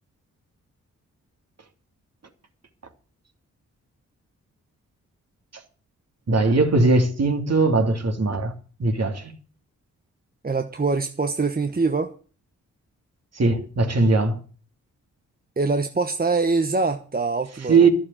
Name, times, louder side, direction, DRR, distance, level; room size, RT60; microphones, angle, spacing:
voice 1, 6.3-8.5 8.8-9.3 13.3-14.4 17.7-17.9, right 3 dB, 50° right, 2.9 m, -19 dB
voice 2, 10.4-12.1 15.6-17.9, right 3 dB, 25° right, 1.1 m, -24 dB
12.5 x 7.2 x 8.8 m
supercardioid pair, 45°, 34 cm